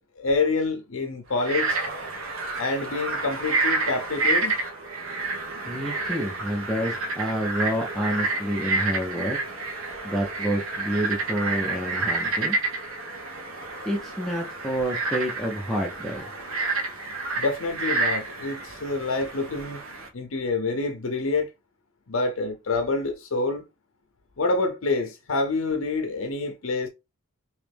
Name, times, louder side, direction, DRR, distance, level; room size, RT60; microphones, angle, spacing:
voice 1, 0.2-1.8 2.6-4.6 17.4-19.8 20.1-21.5 22.1-23.6 24.4-26.9, left 3 dB, 75° left, 0.7 m, -27 dB
Frog, 1.3-20.1, right 3 dB, 85° right, 1.1 m, -29 dB
voice 2, 5.7-9.4 10.0-12.6 13.9-16.3, equal, ahead, 0.7 m, -28 dB
3.2 x 3.0 x 3.4 m
head